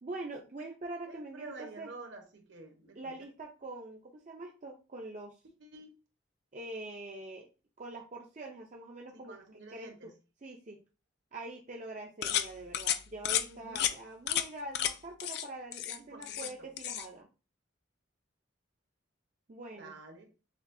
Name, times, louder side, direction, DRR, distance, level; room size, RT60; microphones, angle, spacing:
voice 1, 0.0-1.9 3.0-5.4 6.5-7.5 7.8-9.4 9.7-10.1 10.4-10.8 11.3-17.3 19.5-19.9, right 2 dB, 35° right, 0 dB, 0.5 m, -44 dB
voice 2, 1.1-3.1 5.6-5.9 9.1-10.1 13.5-13.9 15.9-16.7 19.7-20.3, right 3 dB, 65° right, 3 dB, 1.0 m, -49 dB
sound 1, 12.2-12.5 12.7-13.0 13.2-13.4 13.8-13.9 14.3-14.5 14.7-14.9 15.2-15.4 15.7-16.5 16.8-17.1, left 11 dB, 55° left, 0.3 m, -31 dB
6.7 x 2.2 x 2.6 m, 0.31 s
head